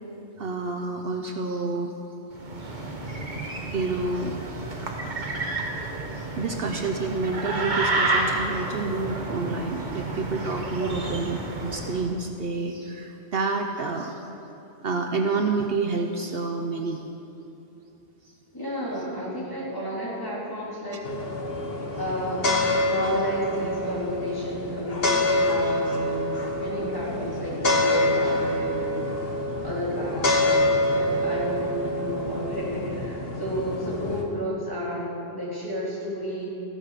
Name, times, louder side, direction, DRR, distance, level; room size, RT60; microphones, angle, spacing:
voice 1, 0.4-1.9 2.6-2.7 3.1-3.2 3.7-4.4 5.2-5.3 6.1-14.2 14.8-17.0, right 3 dB, 60° right, 4 dB, 1.0 m, -29 dB
sound 1, 2.3-12.1, right 2 dB, 45° right, 1.4 m, -30 dB
voice 2, 10.8-11.1 18.5-21.0 21.9-22.6 22.9-29.0 29.6-36.5, equal, 20° left, -7 dB, 3.4 m, -31 dB
sound 2, 21.0-34.2, left 1 dB, 60° left, 1.5 m, -26 dB
14.5 x 10.0 x 6.7 m, 2.9 s
omnidirectional pair, 1.1 m